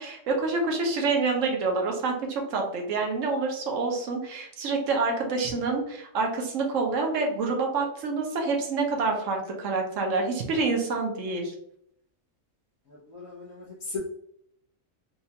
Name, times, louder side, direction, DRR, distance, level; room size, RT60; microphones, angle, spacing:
voice 1, 0.0-11.5, right 3 dB, 70° right, 1 dB, 1.1 m, -27 dB
voice 2, 13.1-14.0, left 4 dB, 80° left, -7 dB, 1.4 m, -37 dB
4.2 x 2.4 x 2.8 m, 0.72 s
omnidirectional pair, 1.4 m